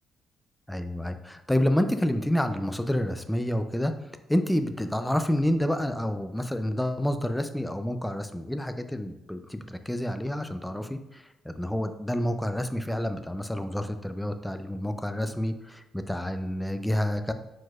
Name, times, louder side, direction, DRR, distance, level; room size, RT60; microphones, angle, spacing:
voice 1, 0.7-4.0 4.3-17.3, left 1 dB, 5° left, 9 dB, 0.3 m, -28 dB
4.9 x 4.0 x 2.3 m, 0.93 s
cardioid pair, 90°, 0 cm